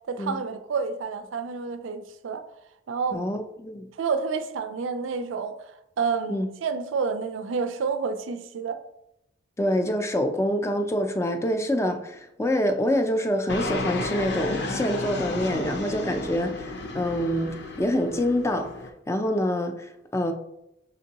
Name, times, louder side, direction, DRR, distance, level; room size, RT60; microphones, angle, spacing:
voice 1, 0.1-2.4 2.9-3.2 4.0-5.7 6.0-8.8, right 5 dB, 85° right, 0.4 m, -29 dB
voice 2, 3.1-3.9 6.3-6.5 9.6-18.8 19.1-20.3, equal, 15° left, 0.3 m, -26 dB
Fixed-wing aircraft airplane, 13.5-18.9, left 2 dB, 60° left, 0.6 m, -32 dB
5.1 x 3.6 x 2.8 m
head